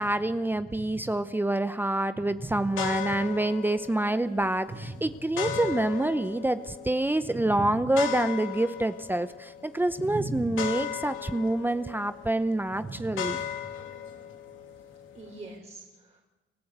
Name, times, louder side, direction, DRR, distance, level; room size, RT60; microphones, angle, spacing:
voice 1, 0.0-13.4, right 1 dB, 10° right, 11 dB, 0.7 m, -27 dB
voice 2, 2.4-2.7 4.7-4.8 5.4-5.6 7.3-7.4 10.0-10.5 12.8-13.4 15.1-16.2, right 2 dB, 35° right, 0 dB, 4.0 m, -39 dB
sound 1, 2.7-15.6, left 9 dB, 80° left, 2.5 m, -38 dB
28.5 x 15.0 x 8.1 m, 1.2 s
cardioid pair, 90°, 20 cm